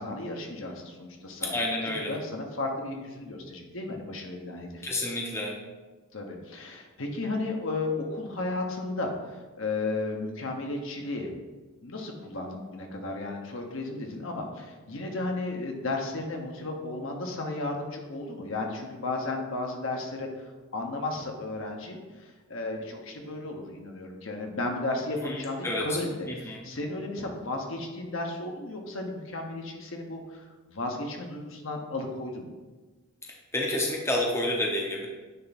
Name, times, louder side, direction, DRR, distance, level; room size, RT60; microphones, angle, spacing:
voice 1, 0.0-1.5 1.8-4.9 6.1-11.3 11.8-32.5, left 2 dB, 65° left, 2 dB, 1.0 m, -34 dB
voice 2, 1.4-2.2 4.8-5.6 25.2-25.9 26.3-26.7 33.5-35.1, left 1 dB, 15° left, -1 dB, 0.7 m, -29 dB
9.3 x 3.4 x 4.1 m, 1.3 s
head